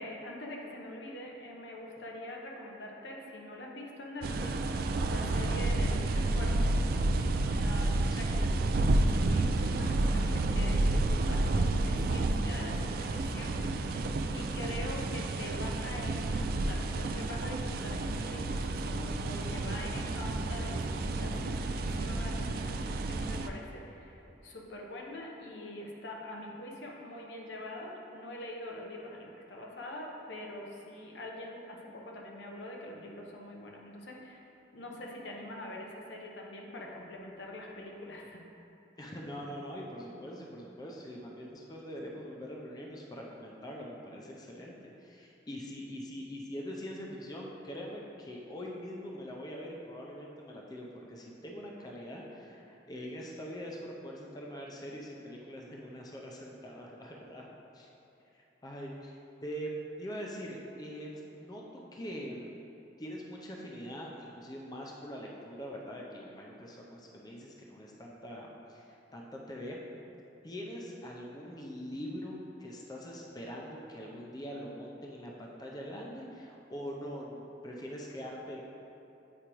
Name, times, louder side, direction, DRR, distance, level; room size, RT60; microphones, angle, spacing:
voice 1, 0.0-6.9 7.6-8.3 9.3-13.6 13.8-34.4 34.7-38.4, left 1 dB, 80° left, -1 dB, 0.9 m, -44 dB
sound 1, 4.2-23.5, right 2 dB, 55° right, 0.3 m, -30 dB
voice 2, 7.7-8.4 8.7-8.9 13.2-13.6 35.0-35.2 39.0-57.5 57.7-57.9 58.3-61.6 61.9-62.6 63.0-69.8 70.4-78.6, equal, 20° left, -2 dB, 0.5 m, -43 dB
8.2 x 4.9 x 3.0 m, 2.8 s
head